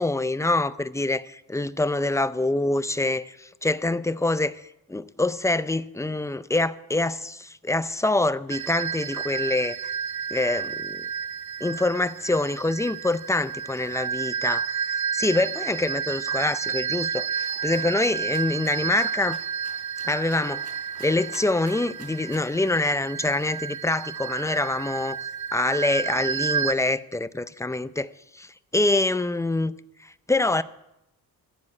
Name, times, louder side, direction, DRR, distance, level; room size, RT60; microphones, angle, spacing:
voice 1, 0.0-4.6 4.9-9.9 10.3-11.0 11.6-19.4 20.0-20.7 21.0-25.2 25.5-29.7 30.0-30.6, left 2 dB, 10° left, 0.4 m, -25 dB
sound 1, 8.5-26.7, right 7 dB, 50° right, 0.6 m, -31 dB
Rattle (instrument), 17.4-22.6, right 3 dB, 80° right, 4.0 m, -50 dB
14.5 x 7.4 x 9.5 m
cardioid pair, 110°, 39 cm